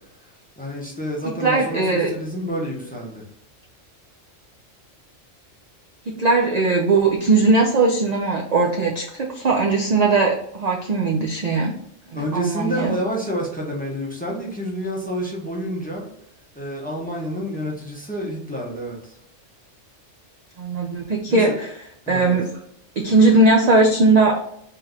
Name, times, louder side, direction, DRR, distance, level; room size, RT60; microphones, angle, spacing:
voice 1, 0.6-3.2 12.1-16.0 16.5-19.1 21.3-21.6 22.1-22.4, equal, 10° left, -2 dB, 0.8 m, -29 dB
voice 2, 1.3-2.1 6.1-11.7 12.1-13.0 20.6-21.7 22.1-22.5 23.0-24.4, right 3 dB, 55° right, -1 dB, 0.4 m, -19 dB
3.7 x 2.8 x 3.6 m, 0.73 s
omnidirectional pair, 1.3 m